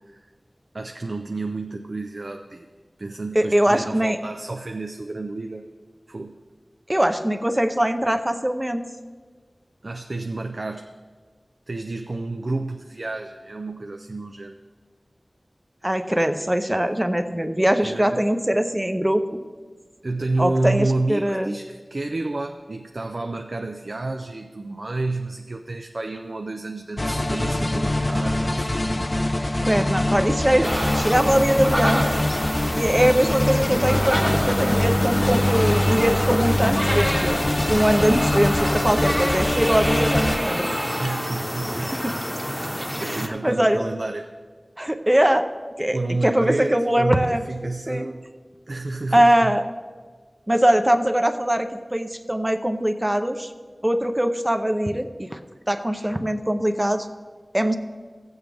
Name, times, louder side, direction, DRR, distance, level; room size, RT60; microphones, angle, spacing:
voice 1, 0.7-2.7 3.0-5.7 6.1-6.4 9.8-10.9 11.7-14.6 17.8-18.2 20.0-28.8 41.0-42.0 42.6-44.3 45.9-48.2 48.7-49.6, right 2 dB, 65° right, 5 dB, 0.5 m, -30 dB
voice 2, 3.3-4.2 6.9-8.8 15.8-19.2 20.4-21.5 29.6-32.1 32.8-37.4 37.7-40.7 41.8-42.1 43.0-43.8 44.8-45.5 45.8-48.1 49.1-49.6 50.5-53.5 53.8-55.4 55.7-57.1 57.5-57.8, right 1 dB, 20° right, 7 dB, 0.6 m, -22 dB
sound 1, 27.0-40.4, left 1 dB, 35° left, 0.4 m, -23 dB
sound 2, 30.6-43.3, equal, 5° left, 1.0 m, -27 dB
15.0 x 7.9 x 3.5 m, 1.5 s
wide cardioid pair, 50°, 0 cm